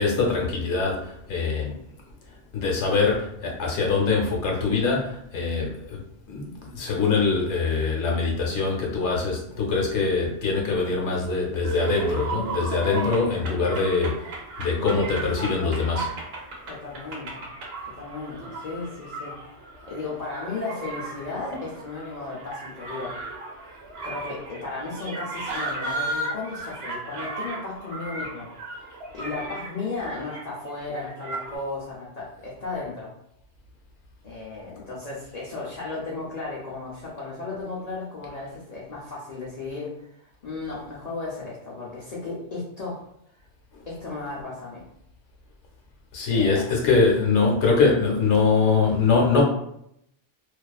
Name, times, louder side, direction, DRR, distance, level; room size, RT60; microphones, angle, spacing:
voice 1, 0.0-1.8 2.3-16.1 43.7-43.8 46.1-49.4, left 4 dB, 80° left, -1 dB, 0.9 m, -23 dB
sound 1, 11.6-31.6, right 2 dB, 65° right, 0.8 m, -35 dB
voice 2, 16.7-17.5 17.9-19.3 19.9-23.2 24.0-28.8 29.1-33.1 34.2-43.1 43.9-44.8 46.3-46.7, left 3 dB, 50° left, -6 dB, 0.5 m, -35 dB
2.3 x 2.3 x 2.3 m, 0.75 s
omnidirectional pair, 1.2 m